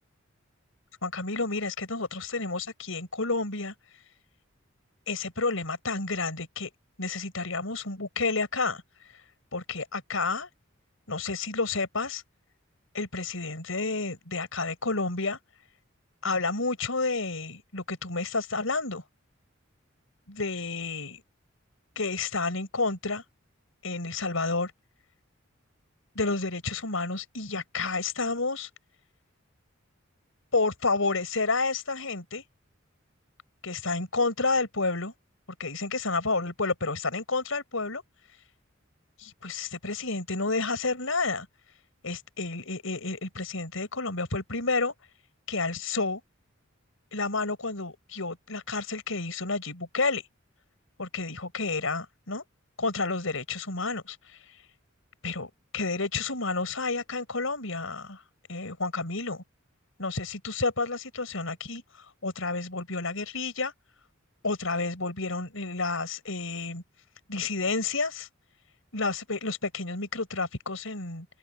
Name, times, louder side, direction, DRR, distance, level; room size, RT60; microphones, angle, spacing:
voice 1, 1.0-3.7 5.1-6.7 7.0-8.8 9.5-10.5 11.1-12.2 12.9-15.4 16.2-19.0 20.3-21.2 22.0-23.2 23.8-24.7 26.1-28.7 30.5-32.4 33.6-35.1 35.6-38.0 39.2-41.5 42.0-44.9 45.5-46.2 47.1-50.2 51.0-52.4 52.8-54.4 55.2-58.2 58.5-59.4 60.0-61.8 62.2-63.7 64.4-66.8 67.3-68.3 68.9-71.3, left 3 dB, 90° left, 4.6 m, -30 dB
open air
head